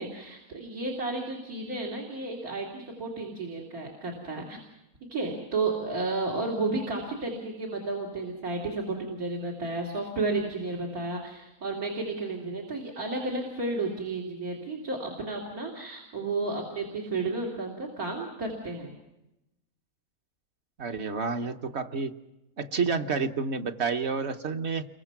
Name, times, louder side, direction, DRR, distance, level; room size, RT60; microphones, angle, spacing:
voice 1, 0.0-4.6 5.1-18.9, right 3 dB, 85° right, -1 dB, 3.6 m, -32 dB
voice 2, 20.8-22.1 22.6-24.9, right 5 dB, 50° right, 6 dB, 1.2 m, -29 dB
29.0 x 23.0 x 6.0 m, 0.92 s
omnidirectional pair, 1.5 m